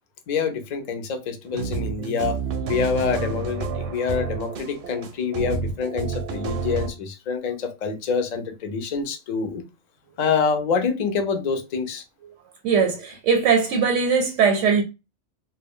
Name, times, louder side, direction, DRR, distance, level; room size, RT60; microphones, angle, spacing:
voice 1, 0.3-2.4 2.7-9.6 10.2-12.0, left 5 dB, 55° left, 0.4 m, -26 dB
sound 1, 1.5-6.9, right 5 dB, 60° right, 0.6 m, -29 dB
voice 2, 12.6-14.8, right 6 dB, 85° right, 0.9 m, -20 dB
2.2 x 2.2 x 3.5 m
omnidirectional pair, 1.2 m